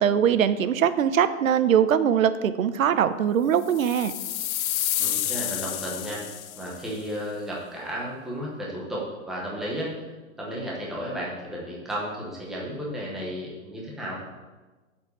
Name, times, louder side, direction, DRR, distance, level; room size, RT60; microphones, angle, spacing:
voice 1, 0.0-4.1, right 8 dB, 75° right, 13 dB, 0.9 m, -22 dB
sound 1, 3.6-6.8, left 12 dB, 90° left, 0.7 m, -30 dB
voice 2, 5.0-6.2 6.6-10.1 10.4-14.2, equal, ahead, -4 dB, 0.8 m, -33 dB
8.8 x 7.2 x 8.0 m, 1.2 s
hypercardioid pair, 175°, 41 cm